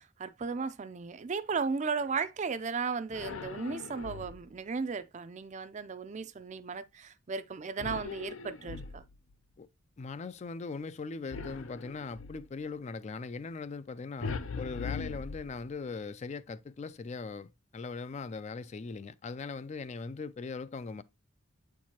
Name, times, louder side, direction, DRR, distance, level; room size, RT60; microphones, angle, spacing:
voice 1, 0.0-9.0, right 5 dB, 35° right, 0.4 m, -35 dB
sound 1, 3.1-4.6 7.8-9.3 11.3-12.5 14.2-15.9, left 4 dB, 75° left, 0.6 m, -40 dB
voice 2, 10.0-21.0, left 4 dB, 35° left, 0.3 m, -40 dB
8.1 x 4.5 x 2.9 m
head